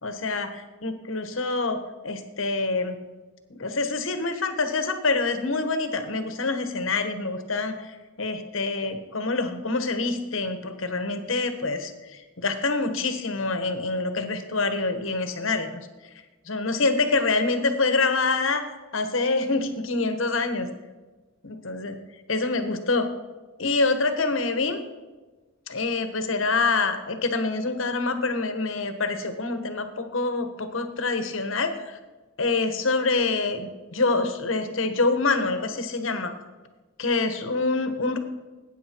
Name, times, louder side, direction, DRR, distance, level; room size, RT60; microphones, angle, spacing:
voice 1, 0.0-1.8 2.0-2.9 3.5-15.8 16.5-18.6 18.9-20.7 21.4-22.0 22.3-23.1 23.6-24.8 25.7-32.0 32.4-36.3 37.0-38.2, left 3 dB, 75° left, 8 dB, 1.4 m, -26 dB
19.0 x 9.3 x 4.6 m, 1.2 s
head